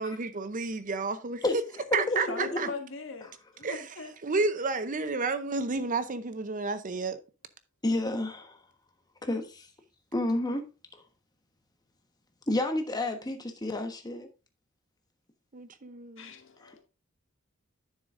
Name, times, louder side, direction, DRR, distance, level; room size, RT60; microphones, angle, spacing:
voice 1, 0.0-1.4 1.9-2.7 3.6-3.8 4.2-7.2 15.5-16.3, right 4 dB, 40° right, 0.7 m, -31 dB
voice 2, 1.4-2.6 7.8-8.6 9.2-9.7 10.1-10.7 12.5-14.3 16.6-16.7, left 2 dB, 20° left, 1.2 m, -30 dB
voice 3, 2.3-3.3 3.6-4.1 16.2-16.8, left 3 dB, 65° left, 1.6 m, -40 dB
10.0 x 7.1 x 2.5 m
head